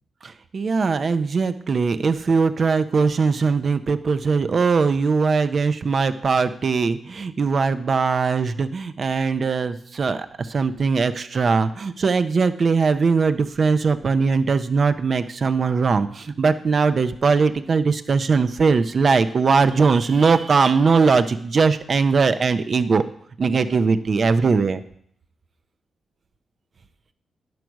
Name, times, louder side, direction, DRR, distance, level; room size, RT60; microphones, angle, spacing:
voice 1, 0.5-23.0 23.4-24.8, right 4 dB, 45° right, 11 dB, 0.5 m, -20 dB
10.5 x 4.6 x 6.2 m, 0.64 s
wide cardioid pair, 125°, 0 cm